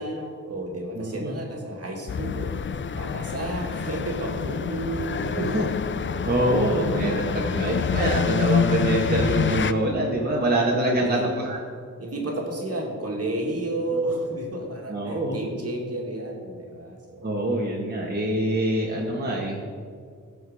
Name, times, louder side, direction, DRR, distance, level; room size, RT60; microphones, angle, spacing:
voice 1, 0.0-2.5 3.0-5.6 6.1-6.3 6.7-7.8 11.0-11.3 12.0-17.4, right 2 dB, 50° right, 0 dB, 2.3 m, -32 dB
voice 2, 1.0-1.4 5.4-5.6 6.2-11.6 14.9-15.4 17.2-19.6, right 1 dB, 30° right, -3 dB, 1.7 m, -25 dB
sound 1, 2.1-9.7, left 6 dB, 40° left, 0.5 m, -27 dB
15.0 x 5.2 x 5.0 m, 2.1 s
cardioid pair, 65°, 31 cm